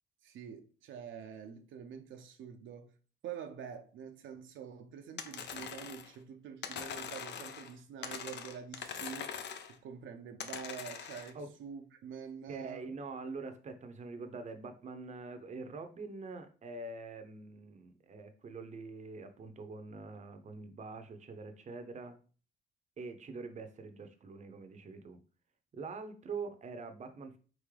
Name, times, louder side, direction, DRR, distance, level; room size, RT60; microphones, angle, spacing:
voice 1, 0.2-2.9 3.2-9.4 9.8-12.9, right 7 dB, 75° right, 0.6 m, -46 dB
sound 1, 5.2-6.1 6.6-7.7 8.0-9.8 10.4-11.3, left 7 dB, 60° left, 0.6 m, -42 dB
voice 2, 12.5-22.2 23.0-25.2 25.7-27.4, right 4 dB, 35° right, 0.7 m, -44 dB
4.1 x 3.6 x 3.2 m
cardioid pair, 90°, 20 cm